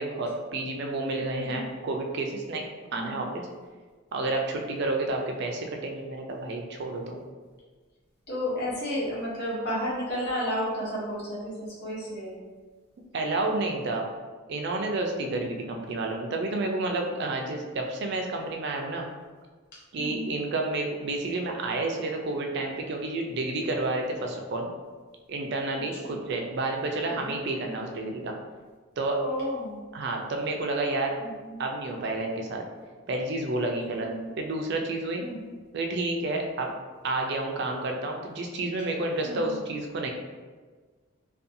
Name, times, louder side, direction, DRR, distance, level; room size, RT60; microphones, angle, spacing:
voice 1, 0.0-2.7 2.9-3.3 4.1-7.2 13.1-14.1 14.5-19.1 19.9-24.7 25.3-28.3 29.0-29.2 29.9-31.1 31.6-32.6 33.1-34.1 34.4-35.3 35.7-36.7 37.0-40.1, right 2 dB, 50° right, 2 dB, 0.3 m, -30 dB
voice 2, 2.9-3.3 8.3-12.3 15.2-15.5 20.0-20.3 26.0-26.1 27.2-27.3 29.2-29.8 31.2-31.6 34.0-34.3 35.2-35.5 39.2-39.7, equal, 50° left, -7 dB, 0.8 m, -33 dB
2.5 x 2.3 x 2.6 m, 1.4 s
head